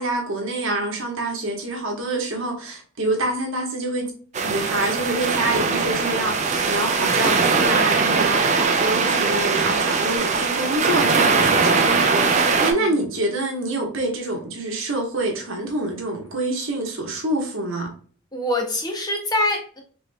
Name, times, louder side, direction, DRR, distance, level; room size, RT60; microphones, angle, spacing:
voice 1, 0.0-4.1 4.4-17.9, right 2 dB, 65° right, 1.3 m, -26 dB
sound 1, 4.3-12.7, right 4 dB, 30° right, 0.5 m, -20 dB
voice 2, 12.5-13.0 18.3-19.8, left 1 dB, 20° left, 0.7 m, -25 dB
5.0 x 3.1 x 2.3 m
head